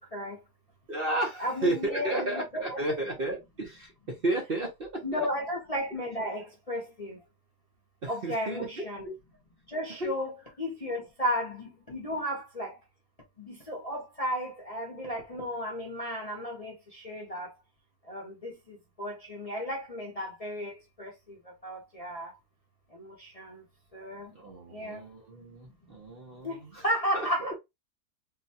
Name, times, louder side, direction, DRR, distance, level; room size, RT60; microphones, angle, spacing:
voice 1, 0.9-5.3 8.0-9.1 10.0-10.1 24.3-26.8 27.1-27.5, right 1 dB, 45° right, 0.8 m, -33 dB
voice 2, 1.4-2.8 5.0-7.2 8.1-9.1 9.7-12.8 13.4-17.5 18.1-21.4 21.6-22.3 22.9-23.6 23.9-24.3 24.7-25.0 26.4-26.6 26.8-27.5, equal, 35° left, 0.7 m, -34 dB
3.8 x 2.2 x 2.7 m
omnidirectional pair, 1.7 m